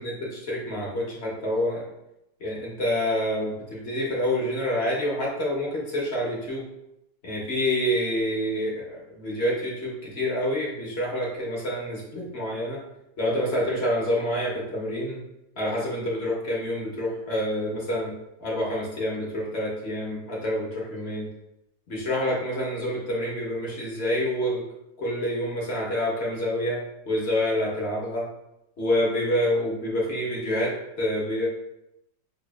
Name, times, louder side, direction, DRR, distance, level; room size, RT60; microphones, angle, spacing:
voice 1, 0.0-1.8 2.4-6.6 7.2-12.8 13.2-15.2 15.6-18.1 18.4-21.2 21.9-24.6 25.0-28.3 28.8-31.5, left 1 dB, 45° left, -4 dB, 0.9 m, -27 dB
6.0 x 2.4 x 2.3 m, 0.86 s
omnidirectional pair, 2.0 m